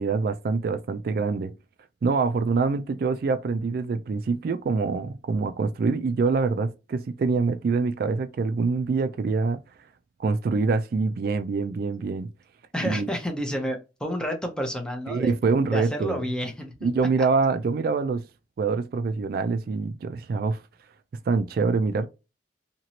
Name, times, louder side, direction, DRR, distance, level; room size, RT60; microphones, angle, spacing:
voice 1, 0.0-1.5 2.0-9.6 10.2-12.3 12.8-13.1 15.1-16.2 16.8-18.2 18.6-20.6 21.3-22.1, right 4 dB, 55° right, 0.3 m, -25 dB
voice 2, 12.7-15.3 15.7-16.9, equal, 5° left, 0.7 m, -30 dB
2.9 x 2.9 x 2.7 m
head